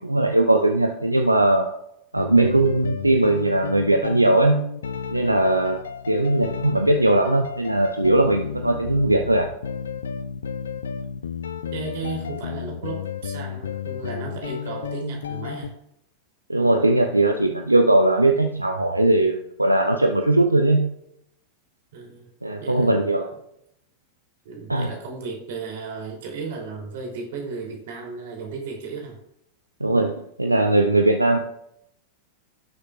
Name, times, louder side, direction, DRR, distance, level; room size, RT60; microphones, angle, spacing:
voice 1, 0.0-1.7 2.1-4.7 5.1-5.8 6.1-9.5 16.5-20.9 22.4-23.3 24.7-24.9 29.8-31.4, right 2 dB, 85° right, 5 dB, 0.6 m, -19 dB
sound 1, 2.2-15.7, left 7 dB, 65° left, 0.5 m, -33 dB
voice 2, 11.7-15.7 21.9-22.3 22.6-23.1 24.4-29.2, right 4 dB, 55° right, 0 dB, 3.0 m, -34 dB
17.0 x 6.6 x 2.4 m, 0.80 s
figure-of-eight pair, 90°, 0 cm